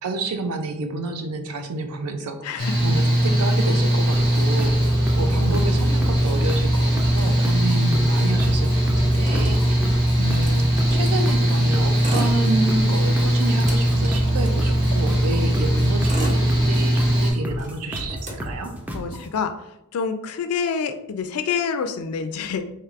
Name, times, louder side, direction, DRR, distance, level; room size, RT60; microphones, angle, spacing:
voice 1, 0.0-18.7, right 2 dB, 80° right, 7 dB, 0.5 m, -30 dB
voice 2, 2.4-2.8 18.9-19.5 19.9-22.7, left 6 dB, 70° left, 8 dB, 0.3 m, -27 dB
Mechanical fan, 2.6-17.3, right 1 dB, 60° right, 1.4 m, -20 dB
sound 1, 4.1-19.3, equal, 5° right, 0.4 m, -33 dB
Motor vehicle (road), 6.2-7.8 8.1-8.2 8.4-11.2 11.8-12.9 13.3-15.1 15.7-17.1 17.5-19.1, right 1 dB, 35° right, 0.7 m, -35 dB
4.5 x 3.0 x 2.4 m, 0.82 s
head